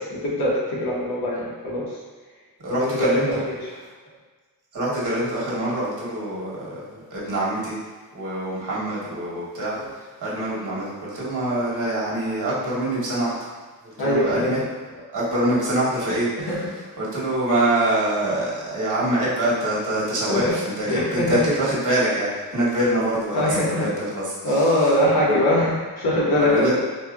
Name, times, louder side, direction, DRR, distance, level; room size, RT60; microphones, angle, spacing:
voice 1, 0.0-1.8 2.7-3.7 9.6-9.9 14.0-14.6 16.4-16.7 20.3-20.4 20.8-21.5 23.3-23.9 24.4-26.7, left 1 dB, 80° left, -5 dB, 1.1 m, -22 dB
voice 2, 2.6-3.4 3.8-3.9 4.7-7.8 8.1-13.5 13.8-14.6 15.1-25.5 26.4-26.7, right 1 dB, 55° right, -6 dB, 1.3 m, -25 dB
4.3 x 2.7 x 2.4 m, 1.3 s
cardioid pair, 90°, 37 cm